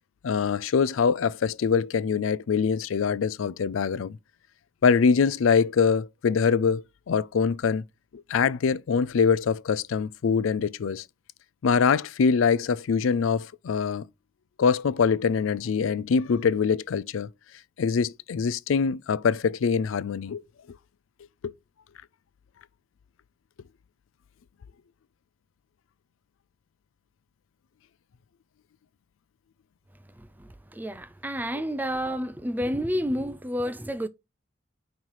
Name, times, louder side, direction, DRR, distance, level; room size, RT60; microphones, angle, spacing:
voice 1, 0.2-4.2 4.8-7.8 8.1-11.0 11.6-14.0 14.6-17.3 17.8-20.4 21.4-21.5, left 6 dB, 80° left, 0.4 m, -24 dB
voice 2, 30.2-34.1, equal, 10° right, 0.4 m, -30 dB
9.3 x 3.2 x 4.5 m
head